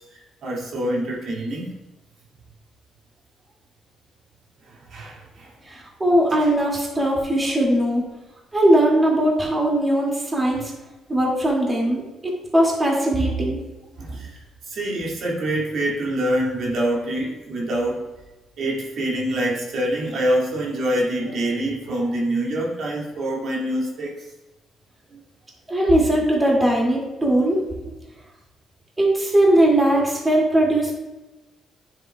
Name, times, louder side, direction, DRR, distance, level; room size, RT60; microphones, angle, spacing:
voice 1, 0.4-1.7 4.7-5.5 14.0-14.4 14.7-18.0 18.6-24.1 25.1-25.2, right 1 dB, 65° right, -4 dB, 2.3 m, -25 dB
voice 2, 5.7-8.0 8.5-10.7 11.1-13.6 25.7-27.6 29.0-30.9, right 1 dB, 20° right, -3 dB, 2.4 m, -19 dB
9.8 x 7.3 x 2.4 m, 1.1 s
cardioid pair, 90°, 0 cm